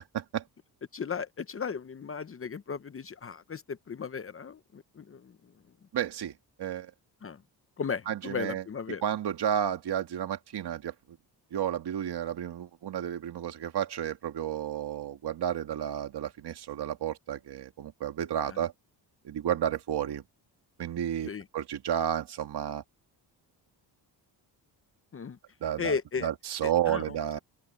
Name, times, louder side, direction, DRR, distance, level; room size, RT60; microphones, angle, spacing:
voice 1, 0.9-5.3 7.2-7.4 7.8-9.0 18.5-18.6 21.2-21.4 25.1-25.4 25.8-26.3 26.6-27.1, left 6 dB, 30° left, 0.8 m, -36 dB
voice 2, 5.9-6.3 6.6-6.9 8.1-8.6 9.0-10.9 11.5-18.7 19.2-20.2 20.8-22.8 25.6-27.4, right 10 dB, 65° right, 2.1 m, -32 dB
open air
cardioid pair, 115°, 43 cm